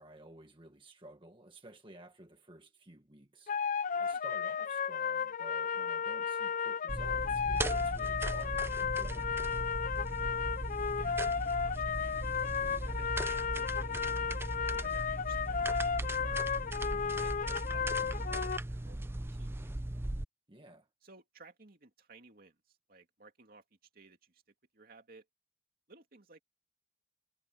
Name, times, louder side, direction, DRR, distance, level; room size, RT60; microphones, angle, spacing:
voice 1, 0.0-3.6 4.0-9.6 16.9-17.2 20.5-20.9, right 1 dB, 30° right, 1.6 m, -54 dB
sound 1, 3.5-18.6, left 6 dB, 45° left, 0.4 m, -34 dB
sound 2, 6.9-20.2, right 1 dB, 15° right, 0.5 m, -38 dB
voice 2, 11.0-16.5 17.2-19.9 21.0-23.6 23.9-24.4 24.7-25.3 25.9-26.4, right 3 dB, 55° right, 2.5 m, -58 dB
head